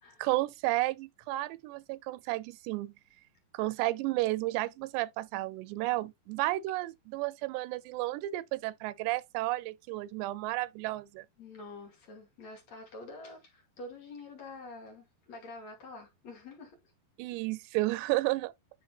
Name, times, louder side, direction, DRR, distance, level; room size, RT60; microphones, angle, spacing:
voice 1, 0.2-2.9 3.5-11.3 17.2-18.5, right 18 dB, 85° right, 2.7 m, -32 dB
voice 2, 11.4-16.9, left 2 dB, 45° left, 3.0 m, -47 dB
11.0 x 4.2 x 2.9 m
omnidirectional pair, 4.9 m